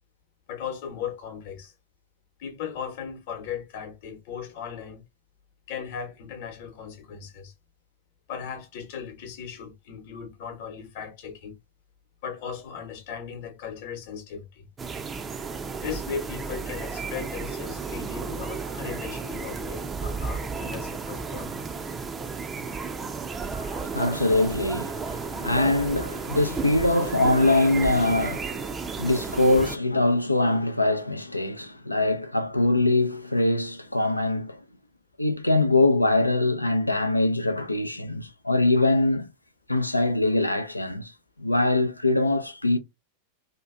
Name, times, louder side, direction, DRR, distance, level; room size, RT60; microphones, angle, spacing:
voice 1, 0.5-1.7 2.4-5.0 5.7-7.5 8.3-11.5 12.2-14.7 15.8-21.6, left 7 dB, 50° left, 0.9 m, -37 dB
sound 1, 14.8-29.8, right 5 dB, 20° right, 0.4 m, -33 dB
voice 2, 23.5-34.6 35.2-39.3 39.7-41.1 41.4-42.8, left 2 dB, 85° left, 0.4 m, -23 dB
2.7 x 2.3 x 2.4 m
figure-of-eight pair, 90°, 0 cm